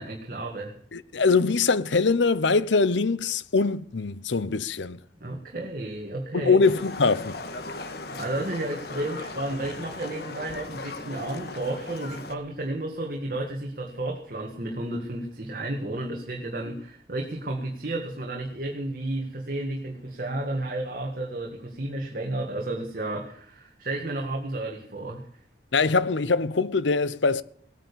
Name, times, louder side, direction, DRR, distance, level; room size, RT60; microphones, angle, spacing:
voice 1, 0.0-0.8 5.2-6.6 8.1-25.3, right 1 dB, 50° right, 1.9 m, -32 dB
voice 2, 0.9-5.0 6.3-7.4 25.7-27.4, left 4 dB, 80° left, 0.8 m, -23 dB
Livestock farm animals working animals, 6.6-12.3, left 3 dB, 55° left, 1.6 m, -38 dB
18.0 x 9.3 x 6.9 m
head